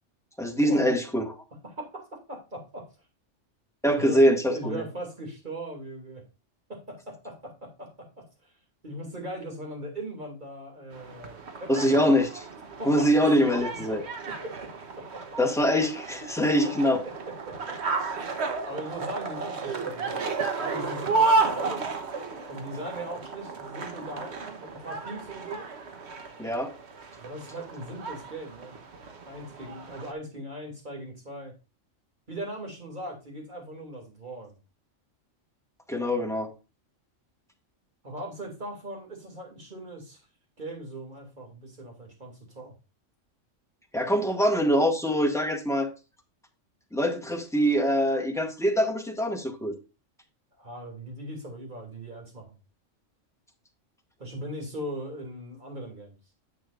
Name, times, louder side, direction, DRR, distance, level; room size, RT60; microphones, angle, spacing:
voice 1, 0.4-1.3 3.8-4.8 11.7-12.4 12.8-14.0 15.4-17.0 26.4-26.7 35.9-36.5 43.9-45.9 46.9-49.7, equal, ahead, 1.4 m, -24 dB
voice 2, 1.6-2.9 3.9-6.2 6.7-8.5 8.8-12.0 12.8-14.7 15.0-15.3 16.6-17.8 18.6-20.2 20.6-21.8 22.5-25.7 27.2-28.8 29.2-31.5 32.3-34.6 38.0-40.2 40.6-42.8 50.6-52.6 54.2-56.2, right 1 dB, 35° right, 2.8 m, -39 dB
sound 1, 10.9-30.1, right 4 dB, 60° right, 1.3 m, -32 dB
9.7 x 7.2 x 2.5 m
omnidirectional pair, 1.3 m